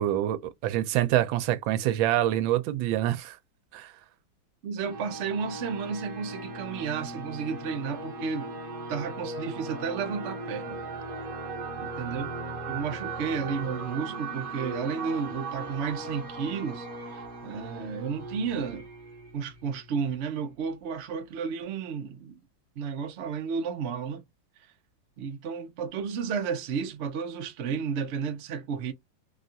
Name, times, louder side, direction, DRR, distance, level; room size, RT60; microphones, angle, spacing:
voice 1, 0.0-3.4 3.7-3.9, right 13 dB, 90° right, 1.3 m, -26 dB
voice 2, 4.6-8.6 8.9-10.8 11.8-12.3 12.7-18.9 19.3-22.4 22.8-24.2 25.2-28.9, right 6 dB, 75° right, 0.6 m, -32 dB
sound 1, 4.8-20.2, right 3 dB, 35° right, 1.0 m, -38 dB
3.5 x 2.3 x 2.6 m
omnidirectional pair, 2.1 m